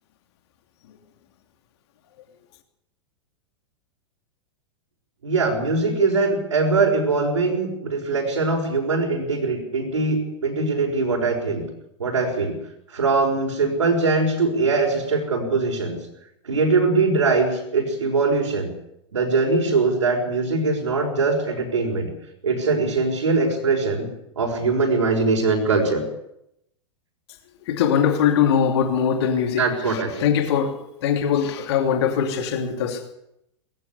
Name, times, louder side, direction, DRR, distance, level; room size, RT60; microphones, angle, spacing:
voice 1, 5.2-11.6 12.0-12.5 12.9-16.0 16.4-18.7 19.1-22.1 22.4-24.1 24.4-26.0 29.6-30.3, right 3 dB, 85° right, -1 dB, 5.7 m, -22 dB
voice 2, 27.7-29.6 29.9-30.7 31.0-33.0, left 8 dB, 60° left, 5 dB, 3.0 m, -21 dB
21.0 x 15.5 x 8.3 m, 0.81 s
hypercardioid pair, 100°, 16 cm